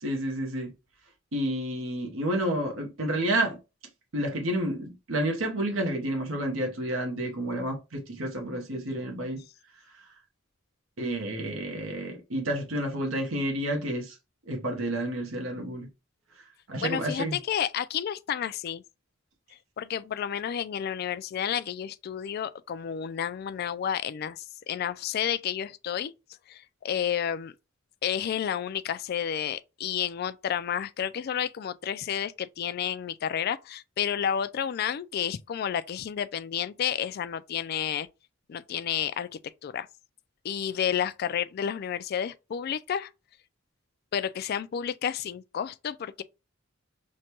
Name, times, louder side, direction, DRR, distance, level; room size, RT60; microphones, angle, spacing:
voice 1, 0.0-0.7 1.3-3.6 4.1-9.4 11.0-14.1 14.5-15.9 16.7-17.4, right 1 dB, 90° right, 1.0 m, -30 dB
voice 2, 16.8-18.8 19.8-26.1 26.5-27.5 28.0-38.1 38.5-39.9 40.4-43.1 44.1-46.2, left 9 dB, 50° left, 0.3 m, -31 dB
6.3 x 2.2 x 2.9 m
head